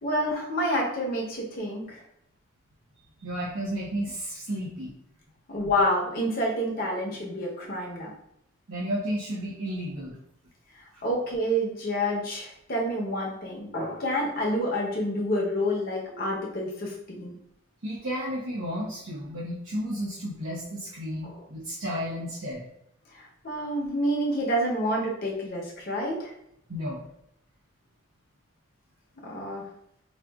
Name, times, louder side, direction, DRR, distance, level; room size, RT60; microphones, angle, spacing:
voice 1, 0.0-2.0 5.5-8.1 10.8-17.4 21.2-21.4 23.1-26.3 29.2-29.7, equal, 45° left, -3 dB, 0.8 m, -28 dB
voice 2, 3.2-5.0 8.7-10.2 10.9-11.0 17.8-22.6 26.7-27.0, equal, 65° right, -8 dB, 0.7 m, -32 dB
4.2 x 2.4 x 2.3 m, 0.76 s
head